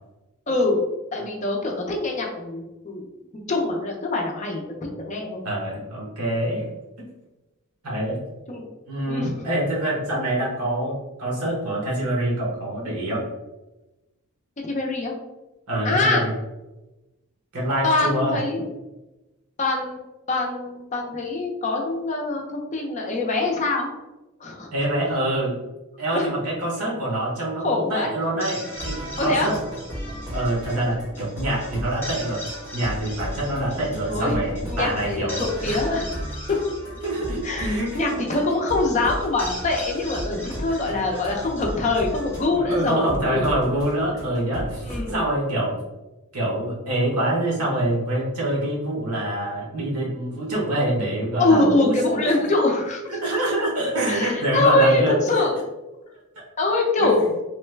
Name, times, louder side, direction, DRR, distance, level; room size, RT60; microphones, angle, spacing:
voice 1, 0.5-0.8 1.1-3.0 3.5-4.6 5.1-5.4 8.5-8.7 9.1-9.3 14.6-15.1 15.8-16.2 17.8-18.7 19.6-20.0 20.3-23.9 24.4-24.7 26.1-26.2 27.6-28.1 29.2-29.5 34.1-34.4 34.7-36.2 36.5-36.6 37.4-43.5 44.9-45.1 51.4-53.0 54.1-55.5 56.6-57.2, left 2 dB, 35° left, 0 dB, 0.5 m, -23 dB
voice 2, 5.4-6.7 7.8-8.2 8.9-13.2 15.7-16.3 17.5-18.4 24.7-25.6 26.0-29.6 30.3-32.4 32.7-35.8 37.0-38.2 41.1-41.2 42.4-45.8 46.3-52.4 53.1-55.2 56.4-56.5 57.0-57.3, right 1 dB, 85° right, -3 dB, 1.1 m, -25 dB
sound 1, 28.2-43.5, equal, 10° left, 0.9 m, -40 dB
sound 2, 28.7-45.1, equal, 20° right, 1.0 m, -35 dB
3.1 x 2.1 x 3.2 m, 1.0 s
head